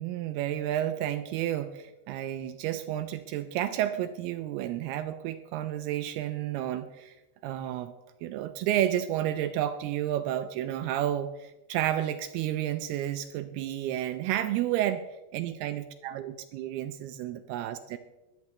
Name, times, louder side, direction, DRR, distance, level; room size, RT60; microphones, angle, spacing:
voice 1, 0.0-7.1 7.4-7.9 8.2-18.0, right 12 dB, 85° right, 9 dB, 2.2 m, -31 dB
23.0 x 8.0 x 3.2 m, 1.0 s
omnidirectional pair, 5.1 m